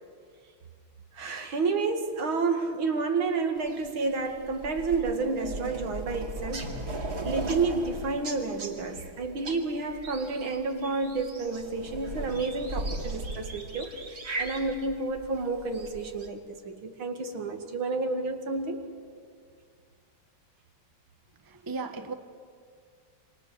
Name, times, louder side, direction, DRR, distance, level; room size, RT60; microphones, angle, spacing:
voice 1, 1.1-6.7 7.2-18.8, right 3 dB, 80° right, 2.8 m, -30 dB
sound 1, 3.6-16.3, right 2 dB, 50° right, 3.0 m, -38 dB
voice 2, 21.5-22.1, right 4 dB, 15° right, 1.0 m, -35 dB
27.5 x 26.5 x 6.8 m
omnidirectional pair, 2.2 m